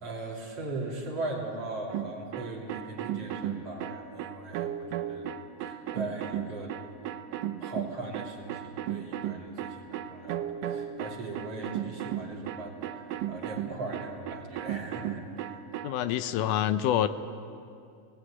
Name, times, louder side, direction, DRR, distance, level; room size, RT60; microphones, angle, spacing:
voice 1, 0.0-5.3 5.6-6.8 7.6-15.6, right 2 dB, 50° right, -2 dB, 3.7 m, -39 dB
sound 1, 1.9-15.9, right 10 dB, 85° right, 2.4 m, -35 dB
voice 2, 15.8-17.1, left 11 dB, 80° left, 12 dB, 2.2 m, -26 dB
19.5 x 17.0 x 9.9 m, 2.5 s
omnidirectional pair, 3.7 m